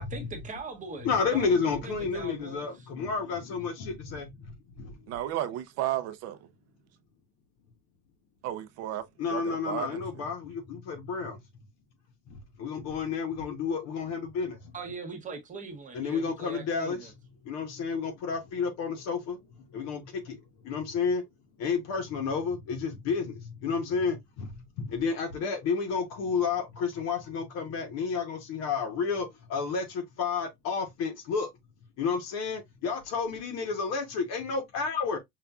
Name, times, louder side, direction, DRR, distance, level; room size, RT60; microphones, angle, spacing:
voice 1, 0.0-2.9 14.7-17.1, right 3 dB, 25° right, 0.8 m, -41 dB
voice 2, 1.0-4.3 4.8-4.9 9.2-11.4 12.6-14.6 15.9-17.1 17.5-19.4 19.7-20.4 20.6-21.2 21.6-24.5 24.8-31.5 32.0-35.2, left 5 dB, 50° left, 0.9 m, -31 dB
voice 3, 5.1-6.5 8.4-10.2, right 13 dB, 50° right, 0.5 m, -34 dB
5.6 x 2.4 x 2.3 m
cardioid pair, 165°, 33 cm